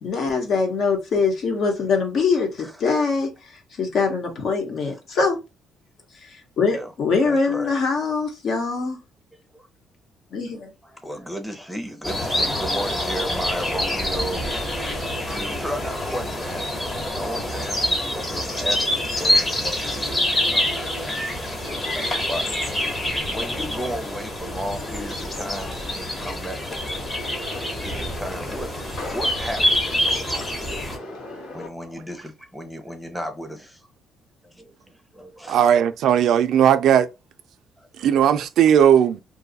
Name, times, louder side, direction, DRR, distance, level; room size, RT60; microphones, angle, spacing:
voice 1, 0.0-3.3 3.8-5.4 6.2-6.3 6.6-9.0 10.3-10.7, left 4 dB, 60° left, 1.1 m, -23 dB
voice 2, 7.2-7.8 9.5-9.7 10.8-14.5 15.2-16.8 17.2-22.5 23.3-27.2 27.6-30.7 31.2-33.8 34.4-35.6 37.8-38.1, equal, ahead, 0.7 m, -35 dB
sound 1, 12.0-31.0, left 1 dB, 20° left, 1.0 m, -26 dB
sound 2, 21.6-31.7, left 2 dB, 85° left, 1.3 m, -38 dB
voice 3, 35.5-37.1 38.0-39.2, right 9 dB, 70° right, 0.3 m, -17 dB
2.6 x 2.3 x 3.9 m
cardioid pair, 120°, 0 cm